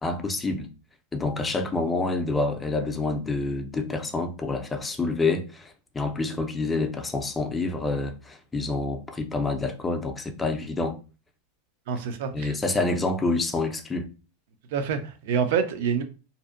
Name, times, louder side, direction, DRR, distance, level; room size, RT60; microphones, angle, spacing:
voice 1, 0.0-0.7 1.1-11.0 12.3-14.1, left 3 dB, 15° left, 0.4 m, -27 dB
voice 2, 11.9-12.6 14.7-16.0, right 6 dB, 65° right, 0.4 m, -27 dB
2.6 x 2.0 x 2.4 m
supercardioid pair, 125°, 0 cm